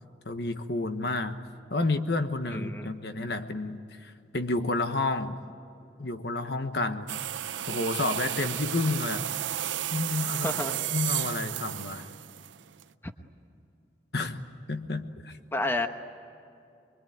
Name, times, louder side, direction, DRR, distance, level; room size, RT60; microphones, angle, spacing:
voice 1, 0.2-1.4 1.7-5.4 6.0-7.2 7.7-9.3 9.9-10.5 10.9-12.1 14.1-14.4 14.7-15.3, left 2 dB, 60° left, 8 dB, 1.3 m, -30 dB
voice 2, 2.5-2.9 10.4-10.8 15.5-15.9, left 2 dB, 10° left, 6 dB, 1.1 m, -29 dB
sound 1, 7.1-12.8, right 12 dB, 80° right, 0.5 m, -33 dB
24.5 x 23.0 x 9.4 m, 2.6 s
head